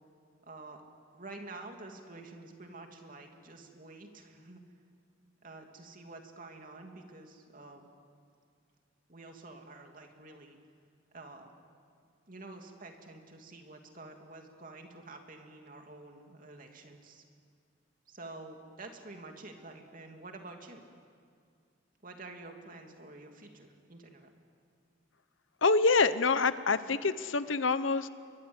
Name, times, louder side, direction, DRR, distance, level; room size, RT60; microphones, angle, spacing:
voice 1, 0.4-0.8 1.1-4.6 5.4-7.9 9.1-10.6 11.1-11.6 12.3-17.2 18.1-20.8 22.0-24.3, right 2 dB, 45° right, 3 dB, 2.8 m, -49 dB
voice 2, 25.6-28.1, left 4 dB, 85° left, 13 dB, 1.0 m, -26 dB
29.0 x 23.5 x 8.1 m, 2.2 s
head